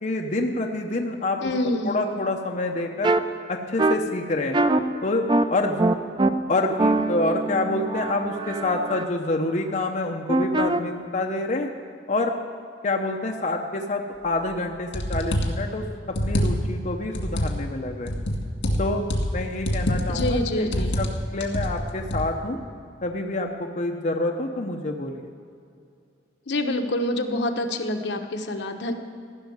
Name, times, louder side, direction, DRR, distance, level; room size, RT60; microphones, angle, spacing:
voice 1, 0.0-3.1 3.5-4.6 5.0-5.8 6.5-11.7 12.1-12.4 12.8-18.1 18.8-19.0 19.3-22.6 23.0-25.3, left 2 dB, 45° left, 1 dB, 0.8 m, -27 dB
voice 2, 1.4-2.0 20.1-21.0 26.5-28.9, left 1 dB, 70° left, 5 dB, 1.0 m, -26 dB
sound 1, 3.0-3.2 3.8-3.9 4.5-4.8 5.3-5.4 5.8-6.3 6.8-9.0 10.3-10.8, right 2 dB, 25° right, 0.5 m, -22 dB
sound 2, 14.4-14.5 14.9-15.6 16.1-16.8 17.1-17.6 18.1-19.4 19.7-20.4 20.7-21.1 21.4-22.3, equal, 85° left, 1.9 m, -25 dB
15.5 x 6.4 x 9.3 m, 2.5 s
head